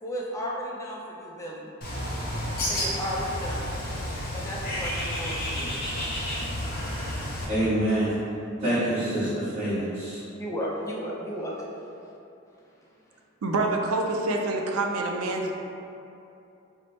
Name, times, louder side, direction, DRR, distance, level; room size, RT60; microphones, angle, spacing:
voice 1, 0.0-1.7 2.7-3.7 4.3-5.8 10.4-11.7, equal, 15° left, -4 dB, 0.4 m, -34 dB
Bird, 1.8-7.5, equal, 45° left, 0.7 m, -31 dB
voice 2, 7.5-8.1 8.6-10.2, right 1 dB, 35° right, -17 dB, 1.0 m, -26 dB
voice 3, 13.4-15.5, right 2 dB, 80° right, 2 dB, 0.4 m, -26 dB
4.4 x 2.0 x 3.0 m, 2.8 s
head